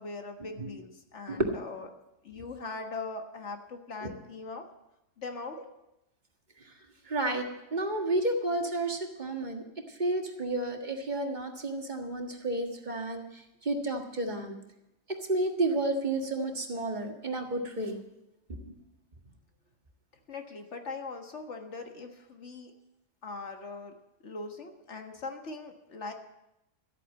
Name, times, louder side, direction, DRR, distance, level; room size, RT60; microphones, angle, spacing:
voice 1, 0.0-1.9 2.2-4.7 5.2-5.6 20.3-22.8 23.2-23.9 24.2-26.1, left 3 dB, 65° left, 4 dB, 1.8 m, -41 dB
voice 2, 7.1-9.6 10.0-13.2 13.6-14.6 15.3-18.0 18.6-18.7, right 2 dB, 35° right, 3 dB, 1.8 m, -31 dB
13.5 x 8.4 x 8.2 m, 0.90 s
omnidirectional pair, 1.3 m